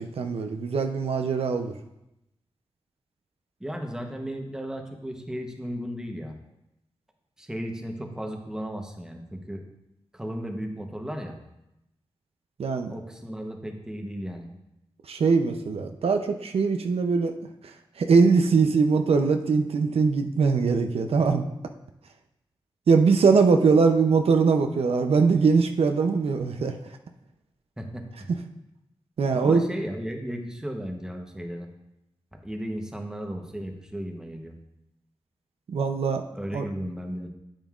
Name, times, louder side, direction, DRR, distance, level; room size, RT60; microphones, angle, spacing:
voice 1, 0.0-1.7 12.6-13.0 15.1-17.3 18.0-21.4 22.9-26.8 29.2-29.6 35.7-36.2 36.5-36.6, right 5 dB, 90° right, 5 dB, 0.6 m, -21 dB
voice 2, 3.6-6.4 7.4-9.6 10.1-11.4 12.9-14.5 27.8-28.3 29.3-31.7 32.4-34.6 36.3-37.3, equal, 5° right, 3 dB, 0.9 m, -35 dB
9.2 x 8.9 x 2.4 m, 0.87 s
wide cardioid pair, 155°, 10 cm